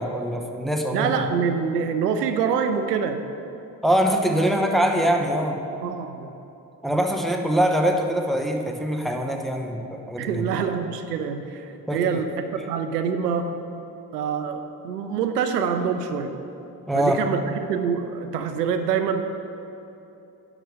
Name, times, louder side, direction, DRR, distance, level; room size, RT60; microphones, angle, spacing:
voice 1, 0.0-1.3 3.8-5.6 6.8-10.5 11.9-12.2 16.9-17.2, right 1 dB, ahead, 3 dB, 1.0 m, -23 dB
voice 2, 0.9-3.2 5.8-6.3 10.2-13.5 14.1-16.3 16.9-19.2, right 6 dB, 80° right, 8 dB, 0.6 m, -25 dB
10.5 x 4.9 x 6.5 m, 2.9 s
figure-of-eight pair, 45°, 47 cm